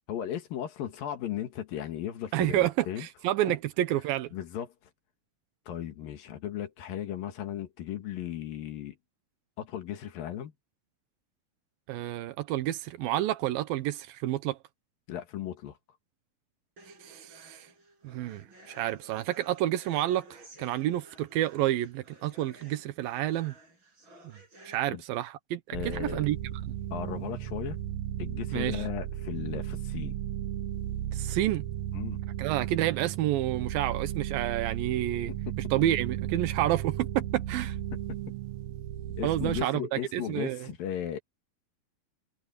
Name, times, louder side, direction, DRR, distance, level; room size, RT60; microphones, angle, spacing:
voice 1, 0.1-3.1 4.3-4.7 5.7-9.0 9.6-10.5 15.1-15.8 24.9-25.0 25.7-26.3 26.9-27.8 28.2-30.2 31.9-32.2 35.3-35.5 38.1-38.2 39.2-41.2, left 10 dB, 80° left, 3.5 m, -36 dB
voice 2, 2.3-4.3 11.9-14.6 17.0-17.7 18.0-23.5 24.2-24.3 24.7-26.4 26.7-26.8 28.5-28.8 31.1-31.6 32.4-35.3 35.7-37.8 39.2-40.7, right 14 dB, 90° right, 2.8 m, -29 dB
sound 1, 16.8-24.8, right 2 dB, 35° right, 6.5 m, -54 dB
sound 2, 25.7-39.6, right 12 dB, 70° right, 1.8 m, -35 dB
omnidirectional pair, 4.0 m